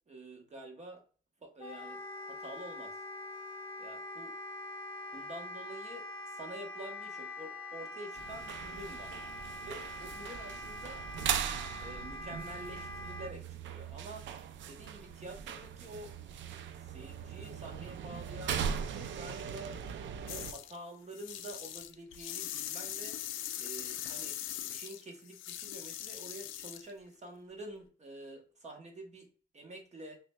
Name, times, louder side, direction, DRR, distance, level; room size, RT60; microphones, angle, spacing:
voice 1, 0.1-1.0 1.4-2.0 2.3-3.0 3.8-4.3 5.1-6.1 6.3-9.1 9.6-11.0 11.8-14.3 14.7-16.1 16.8-19.7 20.3-23.1 23.6-24.4 24.7-29.3 29.5-30.2, right 1 dB, 35° right, 2 dB, 1.0 m, -48 dB
Wind instrument woodwind instrument, 1.6-13.3, left 2 dB, 25° left, 1.0 m, -44 dB
sound 1, 8.2-20.5, right 8 dB, 70° right, 0.4 m, -39 dB
sound 2, 20.3-20.8 21.1-26.9, left 11 dB, 80° left, 0.4 m, -41 dB
5.9 x 2.2 x 2.2 m, 0.40 s
cardioid pair, 90°, 20 cm